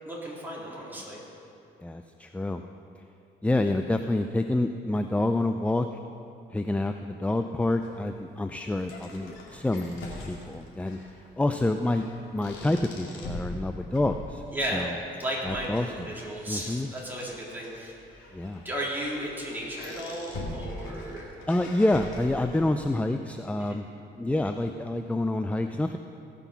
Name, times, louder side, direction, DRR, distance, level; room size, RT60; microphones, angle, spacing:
voice 1, 0.0-1.2 14.5-14.9 15.2-18.0 18.6-21.3 23.6-23.8, right 1 dB, 10° right, -5 dB, 3.5 m, -34 dB
voice 2, 1.8-2.6 3.4-5.9 6.5-11.0 11.4-14.4 14.7-14.9 15.4-15.9 16.5-16.9 18.3-18.6 21.5-23.9 24.2-26.0, left 2 dB, 5° left, 7 dB, 0.4 m, -27 dB
sound 1, 7.8-22.8, left 2 dB, 80° left, 2.3 m, -43 dB
18.0 x 6.1 x 5.8 m, 2.7 s
cardioid pair, 90°, 20 cm